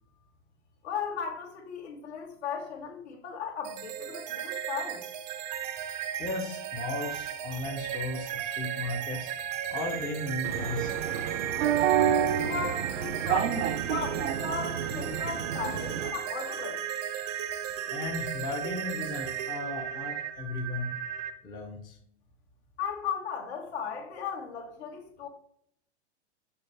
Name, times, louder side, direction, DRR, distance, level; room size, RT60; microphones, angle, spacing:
voice 1, 0.8-5.0 12.4-16.8 22.8-25.3, left 6 dB, 65° left, 2.3 m, -36 dB
sound 1, 3.6-21.3, right 10 dB, 35° right, 0.6 m, -35 dB
voice 2, 6.2-11.5 17.9-20.9 21.4-22.0, left 2 dB, 10° left, 0.7 m, -36 dB
sound 2, 10.4-16.1, right 9 dB, 85° right, 0.7 m, -29 dB
6.8 x 5.9 x 3.4 m
supercardioid pair, 160°, 35 cm